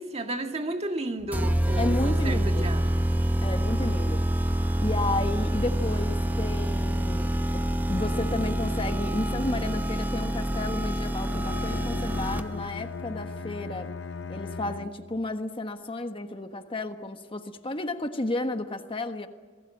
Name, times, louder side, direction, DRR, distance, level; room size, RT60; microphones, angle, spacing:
voice 1, 0.0-3.1, right 1 dB, 35° right, 1.8 m, -33 dB
sound 1, 1.2-11.0, right 1 dB, 70° right, 3.9 m, -43 dB
sound 2, 1.3-12.7, right 1 dB, 10° right, 0.9 m, -27 dB
voice 2, 1.8-2.7 3.4-4.5 4.8-13.9 14.3-19.3, left 2 dB, 30° left, 1.3 m, -32 dB
Bowed string instrument, 11.2-15.3, left 4 dB, 75° left, 0.7 m, -38 dB
28.0 x 20.0 x 7.6 m
head